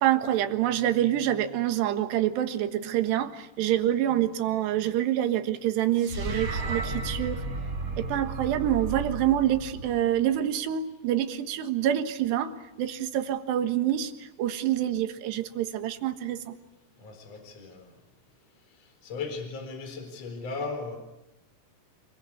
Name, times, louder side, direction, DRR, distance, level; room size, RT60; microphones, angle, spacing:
voice 1, 0.0-7.4 8.0-12.5 12.8-14.1 14.4-16.5, right 11 dB, 70° right, 8 dB, 3.5 m, -26 dB
sound 1, 6.0-10.3, right 3 dB, 25° right, 2.6 m, -33 dB
voice 2, 17.0-17.9 19.0-21.0, left 4 dB, 35° left, 7 dB, 5.0 m, -36 dB
28.0 x 22.5 x 8.7 m, 0.91 s
omnidirectional pair, 5.2 m